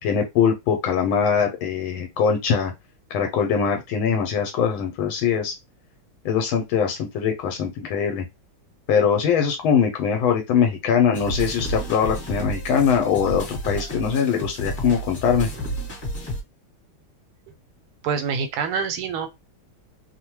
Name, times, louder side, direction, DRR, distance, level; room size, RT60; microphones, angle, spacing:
voice 1, 0.0-2.7 3.1-5.5 6.2-8.2 8.9-15.5, left 7 dB, 80° left, 1.4 m, -22 dB
sound 1, 11.1-16.4, right 1 dB, 30° left, 1.1 m, -31 dB
voice 2, 18.0-19.3, right 6 dB, 85° right, 1.5 m, -26 dB
3.4 x 2.1 x 2.9 m
omnidirectional pair, 2.3 m